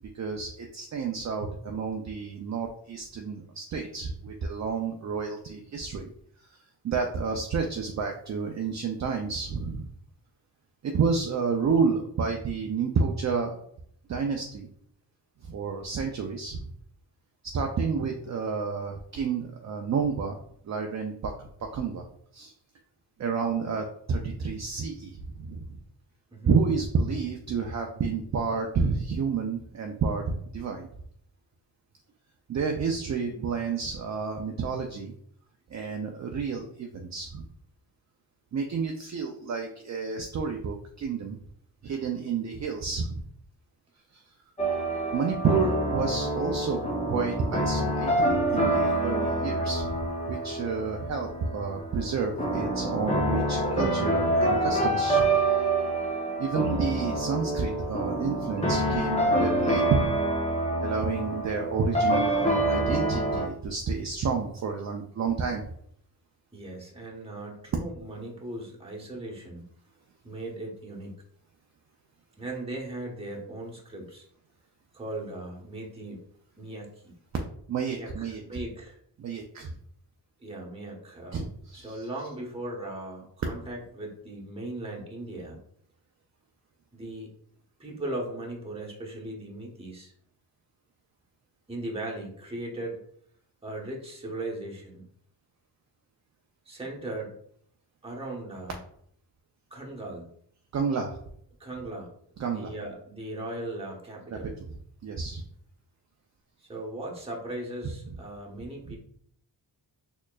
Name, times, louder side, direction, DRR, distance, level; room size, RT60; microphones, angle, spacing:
voice 1, 0.1-6.1 6.4-6.6 6.8-9.9 10.8-13.6 14.1-14.7 15.4-16.7 17.5-20.4 20.6-22.0 22.3-22.5 23.2-25.8 26.5-30.9 32.5-35.1 35.7-37.4 38.5-41.4 41.8-43.2 44.1-44.2 45.1-46.8 47.1-55.3 56.4-60.0 60.8-65.7 77.7-78.6 79.2-79.7 81.3-82.1 100.7-101.2 102.4-102.7 105.0-105.4 108.9-109.0, right 5 dB, 40° right, 3 dB, 0.5 m, -30 dB
sound 1, 44.6-63.5, right 1 dB, 15° left, 0.8 m, -27 dB
voice 2, 66.5-69.6 70.2-71.1 72.4-74.2 74.9-76.2 76.6-77.2 77.9-79.0 80.4-85.6 86.9-87.3 87.8-90.1 91.7-93.0 93.6-95.1 96.7-97.3 98.0-98.8 99.7-100.3 101.6-102.1 102.4-104.5 106.6-109.0, right 1 dB, 15° right, -3 dB, 1.1 m, -38 dB
4.3 x 3.0 x 2.3 m, 0.66 s
cardioid pair, 90°, 42 cm